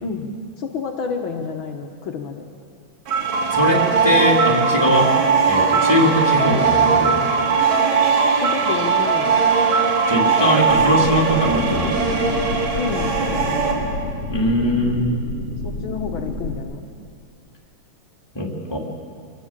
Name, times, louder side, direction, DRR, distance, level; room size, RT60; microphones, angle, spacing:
voice 1, 0.0-2.5 8.4-9.4 12.7-13.8 15.6-16.9, left 5 dB, 75° left, 2 dB, 1.1 m, -29 dB
sound 1, 3.1-13.7, right 5 dB, 70° right, 4.0 m, -19 dB
voice 2, 3.5-5.1 5.5-7.2 10.1-12.2 14.3-15.1 18.3-18.8, left 1 dB, 10° left, -2 dB, 2.6 m, -21 dB
sound 2, 10.7-16.6, left 2 dB, 40° left, 4.2 m, -29 dB
25.0 x 19.0 x 7.4 m, 2.2 s
omnidirectional pair, 4.0 m